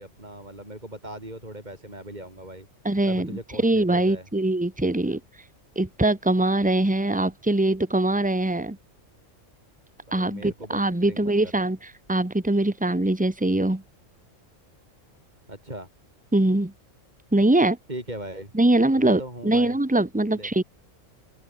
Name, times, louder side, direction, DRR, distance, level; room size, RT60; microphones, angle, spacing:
voice 1, 0.0-2.7 3.0-4.3 10.1-10.8 11.1-11.3 15.5-15.9 17.9-18.5 18.9-19.8 20.3-20.5, right 1 dB, 35° right, 6.3 m, -39 dB
voice 2, 2.8-3.3 3.6-5.2 5.7-8.8 10.1-11.8 12.1-13.8 16.3-16.7 17.3-17.8 18.5-20.6, right 1 dB, 5° right, 1.6 m, -22 dB
open air
omnidirectional pair, 1.3 m